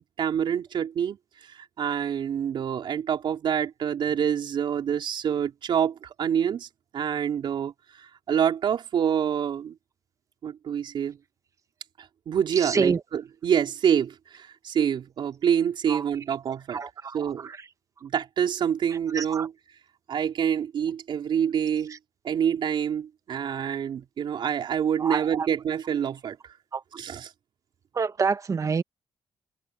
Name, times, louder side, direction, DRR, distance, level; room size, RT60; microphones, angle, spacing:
voice 1, 0.2-1.2 1.5-6.7 6.9-9.7 10.4-11.2 12.3-16.8 17.1-17.5 18.0-19.5 20.1-22.0 22.2-26.4 26.9-27.3, right 8 dB, 65° right, 3.7 m, -26 dB
voice 2, 12.6-13.0 15.9-16.0 16.7-17.3 19.1-19.5 25.0-25.2 26.7-26.8 28.0-28.8, right 5 dB, 40° right, 1.4 m, -26 dB
cardioid pair, 110°, 9 cm